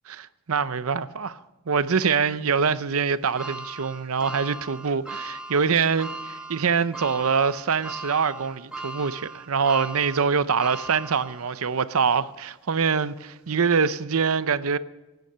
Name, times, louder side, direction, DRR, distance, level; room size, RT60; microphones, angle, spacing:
voice 1, 0.1-1.4 1.7-14.8, right 5 dB, 70° right, 0.6 m, -24 dB
sound 1, 3.4-11.7 12.2-12.3 13.5-13.6, right 2 dB, 5° right, 1.5 m, -38 dB
23.5 x 9.4 x 5.6 m
head